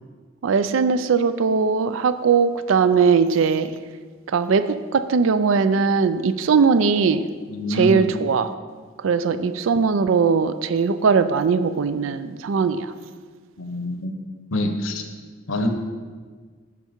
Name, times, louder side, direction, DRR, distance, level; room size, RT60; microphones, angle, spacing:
voice 1, 0.4-3.7 4.3-7.2 7.7-8.5 9.0-12.9, right 5 dB, 70° right, 12 dB, 0.4 m, -20 dB
voice 2, 7.5-8.1 9.3-9.5 13.6-14.1 14.5-15.0 15.5-15.7, left 1 dB, 75° left, 6 dB, 0.8 m, -26 dB
7.9 x 5.8 x 4.5 m, 1.5 s
head